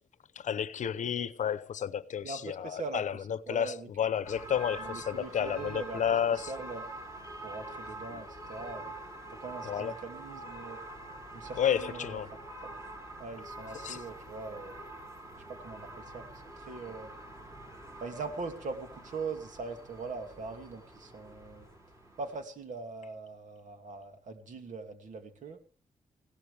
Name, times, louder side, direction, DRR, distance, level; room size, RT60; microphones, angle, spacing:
voice 1, 0.3-6.5 8.1-8.2 9.6-9.9 11.6-12.3 13.7-14.0, left 8 dB, 60° left, 0.8 m, -31 dB
voice 2, 2.2-3.0 3.5-3.9 4.8-6.0 6.3-6.8 7.4-8.9 9.4-10.8 11.3-12.2 12.6-12.7 13.2-14.8 15.5-17.2 18.0-21.7 22.2-25.6, right 4 dB, 65° right, 2.6 m, -41 dB
sound 1, 4.2-22.4, right 1 dB, 20° right, 6.8 m, -45 dB
20.0 x 16.5 x 3.4 m
wide cardioid pair, 165°, 14 cm